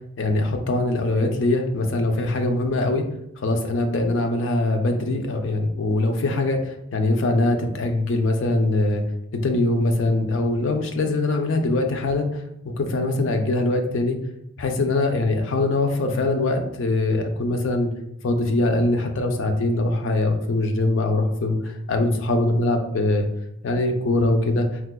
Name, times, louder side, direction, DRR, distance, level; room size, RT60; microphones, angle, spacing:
voice 1, 0.2-3.1 3.4-9.0 9.3-14.2 14.6-17.9 18.2-23.3 23.6-24.7, left 2 dB, 70° left, 5 dB, 0.4 m, -22 dB
4.5 x 2.0 x 2.2 m, 0.78 s
head